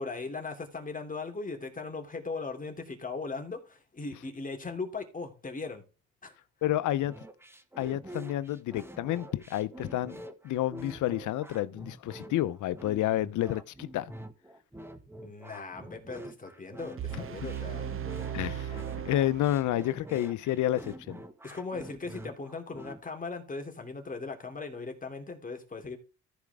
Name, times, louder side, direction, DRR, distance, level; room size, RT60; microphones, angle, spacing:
voice 1, 0.0-5.8 6.2-6.3 15.2-17.9 21.4-26.0, left 4 dB, 25° left, 3.1 m, -38 dB
voice 2, 6.6-7.1 7.8-10.2 10.4-14.1 18.3-21.2, left 13 dB, 80° left, 0.7 m, -30 dB
sound 1, 7.0-23.0, right 1 dB, 10° right, 1.5 m, -46 dB
sound 2, 17.0-20.0, right 10 dB, 45° right, 0.9 m, -37 dB
14.5 x 5.1 x 3.6 m
cardioid pair, 90°, 30 cm